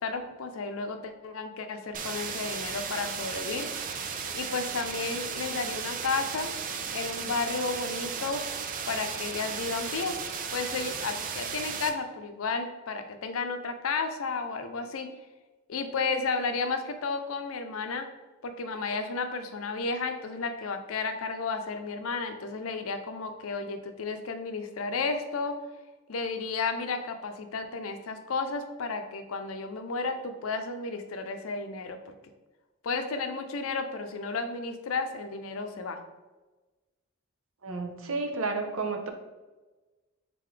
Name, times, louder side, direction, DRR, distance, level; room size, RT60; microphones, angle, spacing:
voice 1, 0.0-3.7 4.3-6.5 6.9-8.4 8.9-10.2 10.5-15.1 15.7-18.1 18.4-25.6 26.1-32.1 32.8-36.0, left 4 dB, 90° left, 7 dB, 0.5 m, -32 dB
sound 1, 1.9-11.9, right 6 dB, 40° right, 0.4 m, -35 dB
voice 2, 37.6-39.1, right 3 dB, 75° right, 4 dB, 0.7 m, -31 dB
3.8 x 3.7 x 3.2 m, 1.2 s
head